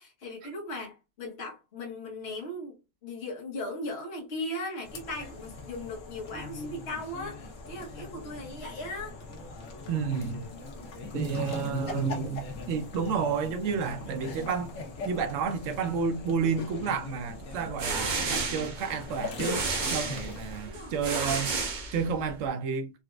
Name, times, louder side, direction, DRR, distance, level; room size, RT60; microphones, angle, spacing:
voice 1, 0.0-9.2 20.6-21.3, left 1 dB, 60° left, 1.3 m, -38 dB
sound 1, 4.8-20.6, left 3 dB, 80° left, 1.2 m, -41 dB
voice 2, 9.9-10.4 11.1-14.7 15.0-19.6 19.9-21.5 21.9-22.9, right 5 dB, 80° right, 1.0 m, -30 dB
sound 2, 17.5-22.4, right 4 dB, 45° right, 0.7 m, -32 dB
3.9 x 2.4 x 2.2 m
omnidirectional pair, 1.3 m